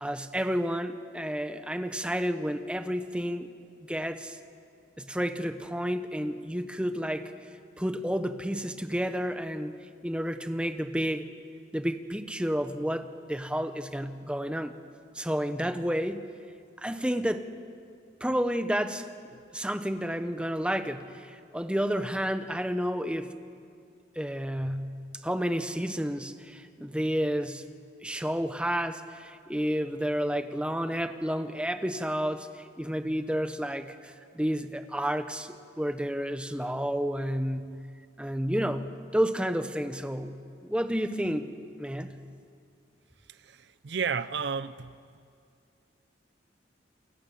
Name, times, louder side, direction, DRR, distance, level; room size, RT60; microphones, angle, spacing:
voice 1, 0.0-3.5 3.9-4.4 5.0-7.3 7.8-11.3 11.7-14.7 15.1-16.3 16.8-17.5 18.2-19.1 19.5-23.3 24.2-25.0 25.2-27.6 28.0-37.8 38.2-40.3 40.7-41.5 41.8-42.1, equal, 5° right, 1.0 m, -30 dB
voice 2, 43.3-45.0, right 6 dB, 60° right, 0.6 m, -32 dB
29.0 x 25.5 x 7.3 m
head